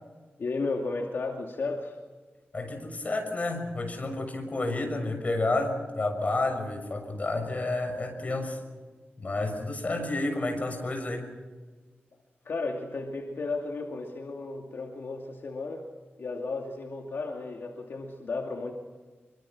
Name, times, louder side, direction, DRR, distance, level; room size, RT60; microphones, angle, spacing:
voice 1, 0.4-2.0 12.4-15.9 16.2-18.7, left 3 dB, 65° left, 1 dB, 2.6 m, -34 dB
voice 2, 2.5-8.6 9.2-11.3, left 2 dB, 35° left, 4 dB, 6.6 m, -30 dB
27.0 x 24.5 x 6.2 m, 1.4 s
wide cardioid pair, 165°, 4 cm